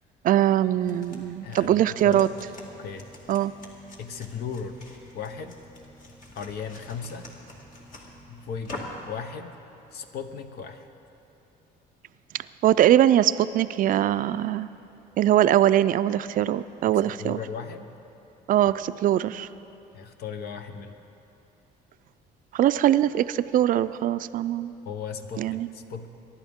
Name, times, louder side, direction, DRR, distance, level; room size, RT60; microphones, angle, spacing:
voice 1, 0.2-2.3 3.3-3.5 12.6-14.7 15.2-17.4 18.5-19.5 22.5-24.7 25.4-25.7, right 12 dB, 55° right, 14 dB, 0.4 m, -22 dB
sound 1, 0.7-9.1, left 1 dB, 50° left, 2.1 m, -45 dB
voice 2, 1.4-2.3 2.8-3.1 4.0-4.8 5.1-5.6 6.3-7.3 8.3-9.6 9.9-10.9 16.8-17.9 19.9-20.9 24.8-26.1, left 6 dB, 70° left, 8 dB, 1.0 m, -37 dB
23.5 x 11.5 x 3.6 m, 2.9 s
cardioid pair, 110°, 17 cm